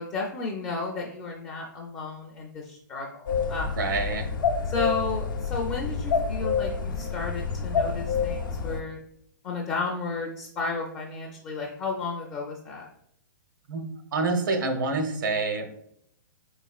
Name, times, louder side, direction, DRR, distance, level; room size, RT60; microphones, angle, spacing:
voice 1, 0.0-3.8 4.7-9.0 9.4-12.9, left 4 dB, 15° left, -1 dB, 0.4 m, -33 dB
sound 1, 3.3-8.8, left 5 dB, 85° left, 0.6 m, -28 dB
voice 2, 3.7-4.3 13.7-15.7, right 3 dB, 75° right, 4 dB, 0.8 m, -27 dB
4.0 x 3.5 x 2.3 m, 0.71 s
hypercardioid pair, 155°, 11 cm